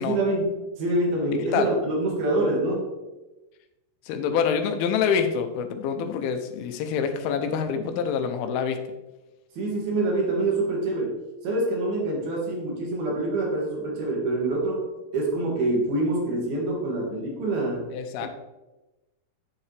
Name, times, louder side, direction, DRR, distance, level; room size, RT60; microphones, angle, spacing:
voice 1, 0.0-2.9 9.6-17.9, right 2 dB, 70° right, -2 dB, 3.2 m, -26 dB
voice 2, 4.1-8.8 17.9-18.3, left 7 dB, 80° left, 7 dB, 2.4 m, -26 dB
7.5 x 7.4 x 3.3 m, 1.1 s
omnidirectional pair, 4.7 m